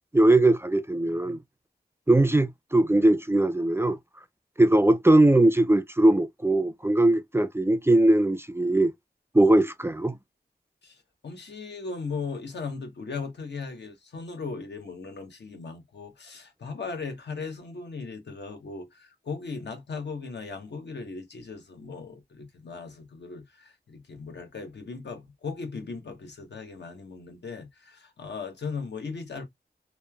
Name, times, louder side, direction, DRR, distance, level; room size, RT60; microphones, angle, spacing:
voice 1, 0.1-1.4 2.1-4.0 4.6-8.9 9.3-10.2, right 1 dB, 15° right, 0.3 m, -20 dB
voice 2, 11.2-29.4, left 4 dB, 90° left, 0.8 m, -37 dB
3.0 x 2.0 x 2.2 m
cardioid pair, 50°, 17 cm